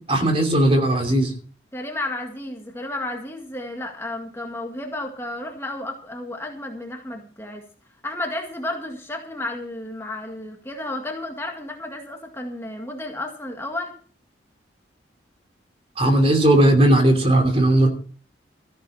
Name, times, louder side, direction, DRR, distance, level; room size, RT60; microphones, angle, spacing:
voice 1, 0.1-1.3 16.0-17.9, right 1 dB, 30° right, 4 dB, 2.9 m, -17 dB
voice 2, 1.7-7.6 8.0-13.9, left 1 dB, 15° left, 2 dB, 1.9 m, -32 dB
14.5 x 12.0 x 4.3 m, 0.43 s
head